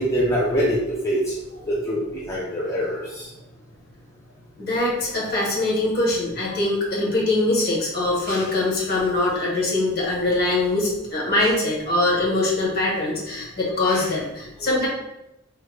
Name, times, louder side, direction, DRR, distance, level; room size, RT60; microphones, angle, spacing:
voice 1, 0.0-1.3 1.7-3.3, equal, 15° left, -6 dB, 0.5 m, -24 dB
voice 2, 4.6-14.9, left 2 dB, 50° left, -4 dB, 1.0 m, -23 dB
3.2 x 2.2 x 3.2 m, 0.91 s
head